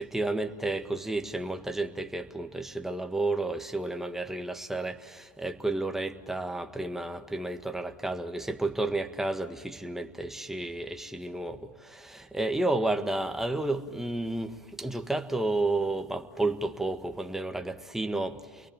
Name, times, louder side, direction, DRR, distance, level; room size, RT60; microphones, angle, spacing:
voice 1, 0.0-18.7, right 2 dB, 5° right, 1.7 m, -31 dB
29.5 x 22.5 x 7.5 m
hypercardioid pair, 105°, 9 cm